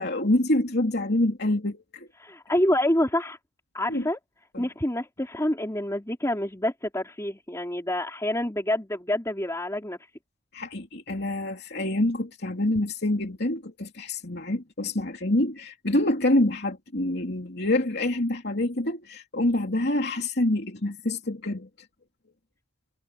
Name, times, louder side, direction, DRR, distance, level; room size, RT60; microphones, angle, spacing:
voice 1, 0.0-2.1 3.9-4.1 4.5-4.7 10.5-21.7, left 1 dB, 50° left, 2.9 m, -26 dB
voice 2, 2.2-3.4 3.7-4.2 4.6-10.0, left 1 dB, 15° left, 3.2 m, -27 dB
head